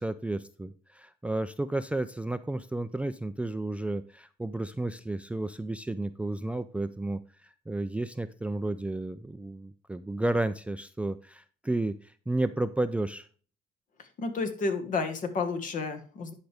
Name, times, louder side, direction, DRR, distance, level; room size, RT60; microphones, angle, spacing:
voice 1, 0.0-13.3, right 2 dB, 5° right, 13 dB, 0.4 m, -32 dB
voice 2, 14.2-16.3, left 4 dB, 50° left, 8 dB, 1.5 m, -31 dB
10.5 x 5.0 x 3.4 m, 0.41 s
cardioid pair, 110°, 17 cm